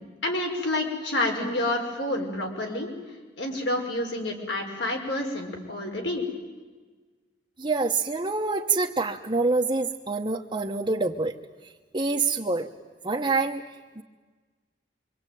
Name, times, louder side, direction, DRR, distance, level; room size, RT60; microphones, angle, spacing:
voice 1, 0.2-2.9 3.4-6.2, left 1 dB, 75° left, 2 dB, 5.3 m, -28 dB
voice 2, 7.6-11.3 11.9-12.7 13.0-13.6 14.0-14.1, right 3 dB, 25° right, 0 dB, 1.1 m, -26 dB
25.5 x 25.5 x 9.3 m, 1.4 s
head